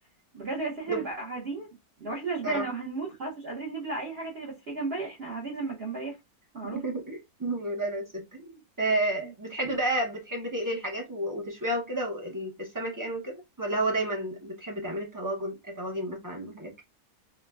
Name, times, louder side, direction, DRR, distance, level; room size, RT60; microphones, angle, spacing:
voice 1, 0.3-1.7 2.0-6.2 6.5-6.8 9.2-9.3, right 3 dB, 50° right, 0.9 m, -34 dB
voice 2, 6.7-8.5 8.8-16.7, right 1 dB, 30° right, 0.3 m, -31 dB
4.7 x 2.1 x 2.2 m
omnidirectional pair, 1.6 m